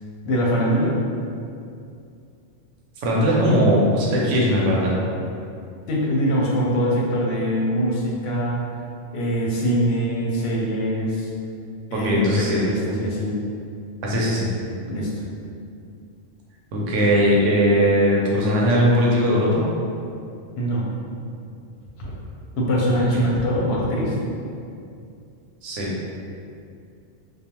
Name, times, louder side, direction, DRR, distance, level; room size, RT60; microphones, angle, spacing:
voice 1, 0.2-0.9 5.9-8.6 9.1-11.3 11.9-13.4 14.9-15.1 20.6-20.9 22.0-22.1 22.6-24.2, equal, 65° left, -4 dB, 0.7 m, -23 dB
voice 2, 3.0-5.0 11.9-12.7 14.0-14.5 16.7-19.6 25.6-25.9, equal, 70° right, -4 dB, 0.9 m, -19 dB
2.4 x 2.2 x 2.9 m, 2.5 s
omnidirectional pair, 1.3 m